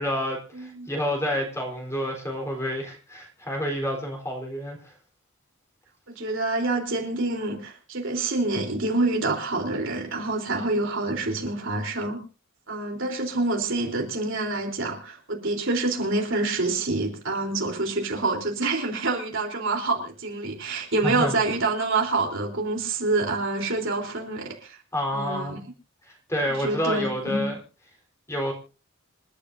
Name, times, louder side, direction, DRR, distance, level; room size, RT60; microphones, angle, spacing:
voice 1, 0.0-4.9 21.0-21.3 24.9-25.6 26.1-27.6 28.3-28.5, equal, 15° left, 1 dB, 4.1 m, -29 dB
voice 2, 0.5-0.9 6.1-12.2 12.7-24.8 25.1-25.6 26.5-27.5, right 2 dB, 65° right, 2 dB, 3.8 m, -27 dB
27.5 x 12.0 x 2.7 m, 0.33 s
head